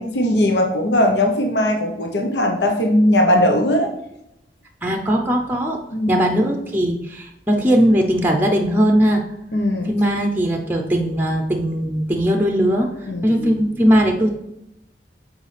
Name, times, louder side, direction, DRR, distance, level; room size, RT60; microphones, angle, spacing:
voice 1, 0.0-3.9 5.9-6.2 9.5-9.9 13.1-13.6, left 1 dB, 80° left, 2 dB, 1.0 m, -19 dB
voice 2, 4.8-5.8 6.1-9.2 9.9-12.9 13.2-14.3, equal, 10° right, 3 dB, 0.6 m, -19 dB
8.1 x 4.8 x 3.4 m, 0.83 s
head